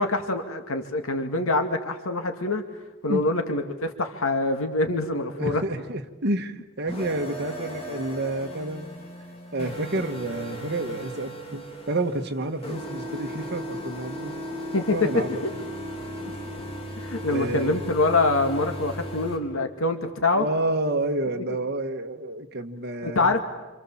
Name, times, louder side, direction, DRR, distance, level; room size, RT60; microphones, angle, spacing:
voice 1, 0.0-2.6 3.0-5.6 14.7-15.4 17.0-20.4 23.0-23.4, left 2 dB, 80° left, 5 dB, 2.1 m, -25 dB
voice 2, 5.4-8.9 9.5-14.4 14.9-15.4 17.3-17.9 20.3-23.3, right 2 dB, 55° right, 4 dB, 1.5 m, -29 dB
sound 1, 6.9-19.4, equal, 30° left, 3.3 m, -36 dB
28.0 x 26.5 x 7.3 m, 1.2 s
head